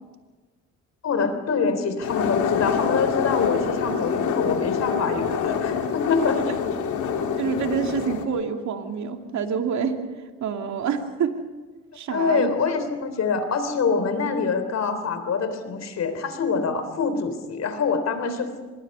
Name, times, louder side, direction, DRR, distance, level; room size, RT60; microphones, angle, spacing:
voice 1, 1.0-6.4 12.1-18.6, left 5 dB, 60° left, 9 dB, 3.5 m, -25 dB
sound 1, 2.0-8.2, left 7 dB, 75° left, 2.7 m, -26 dB
voice 2, 7.4-10.0 10.4-11.4 11.9-12.5, right 7 dB, 70° right, 4 dB, 2.6 m, -27 dB
25.5 x 21.5 x 5.5 m, 1.3 s
cardioid pair, 90°, 30 cm